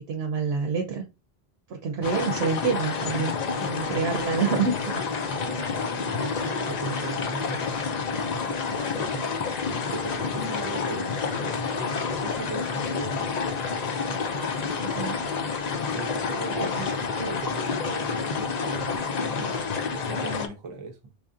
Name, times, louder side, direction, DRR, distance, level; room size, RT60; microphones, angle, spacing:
voice 1, 0.1-1.0 1.7-3.3 3.6-4.8 14.9-15.2 16.6-16.8, right 5 dB, 75° right, 0.8 m, -27 dB
sound 1, 2.0-20.5, left 5 dB, 50° left, 0.5 m, -29 dB
voice 2, 5.3-7.6 8.1-11.9 12.2-13.3 15.9-16.7 17.0-19.6 19.9-21.0, right 3 dB, 35° right, 0.5 m, -38 dB
4.8 x 2.6 x 2.4 m
omnidirectional pair, 1.1 m